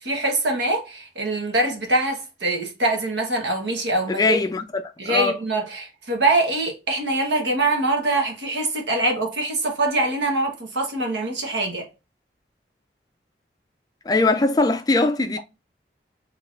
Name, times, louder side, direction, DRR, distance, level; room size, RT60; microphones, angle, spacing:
voice 1, 0.0-4.4 5.0-11.9, right 2 dB, 85° right, 1.3 m, -23 dB
voice 2, 4.1-5.3 14.1-15.4, left 3 dB, 20° left, 0.3 m, -21 dB
3.6 x 3.2 x 2.5 m
head